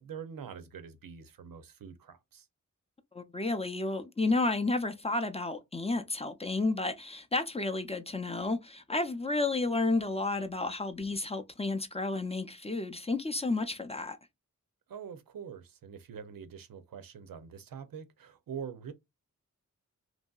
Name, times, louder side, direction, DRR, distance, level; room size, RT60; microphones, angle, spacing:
voice 1, 0.0-2.5 14.9-18.9, right 7 dB, 85° right, 0.5 m, -44 dB
voice 2, 3.1-14.2, left 2 dB, 20° left, 0.4 m, -31 dB
2.9 x 2.6 x 2.3 m
cardioid pair, 55°, 33 cm